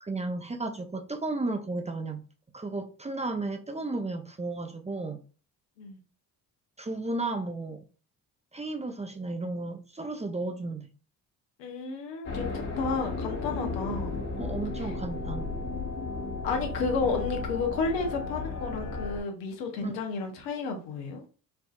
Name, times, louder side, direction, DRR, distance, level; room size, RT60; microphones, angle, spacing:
voice 1, 0.0-2.2 2.5-5.2 6.8-7.9 8.5-10.9 13.9-14.0 14.4-15.5 19.8-19.9, right 2 dB, 15° right, 0.5 m, -34 dB
voice 2, 11.6-14.2 14.8-14.9 16.4-21.2, left 4 dB, 85° left, 0.9 m, -32 dB
sound 1, 12.2-19.2, left 3 dB, 55° left, 1.6 m, -34 dB
4.5 x 2.6 x 2.4 m
hypercardioid pair, 50°, 47 cm